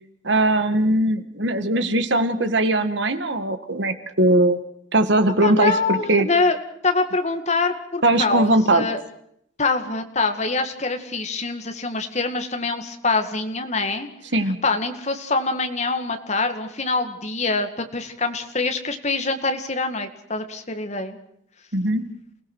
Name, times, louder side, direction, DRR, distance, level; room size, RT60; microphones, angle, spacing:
voice 1, 0.2-4.6 4.9-6.3 8.0-8.9 14.3-14.6 21.7-22.0, right 1 dB, 65° right, 9 dB, 1.8 m, -20 dB
voice 2, 5.4-6.6 6.8-9.0 9.6-14.1 14.6-21.2, left 3 dB, 35° left, 6 dB, 2.1 m, -24 dB
29.0 x 17.5 x 6.3 m, 0.71 s
head